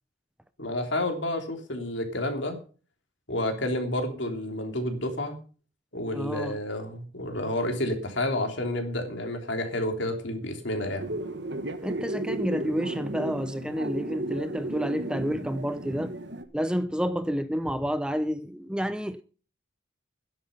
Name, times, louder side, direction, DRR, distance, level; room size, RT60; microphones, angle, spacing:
voice 1, 0.6-2.6 3.3-5.4 5.9-11.1, left 1 dB, 60° left, 3.3 m, -30 dB
voice 2, 6.1-6.6 11.8-16.1 16.5-19.2, equal, 5° right, 0.6 m, -29 dB
sound 1, 11.0-16.4, right 1 dB, 55° right, 1.5 m, -34 dB
12.5 x 11.0 x 5.4 m
head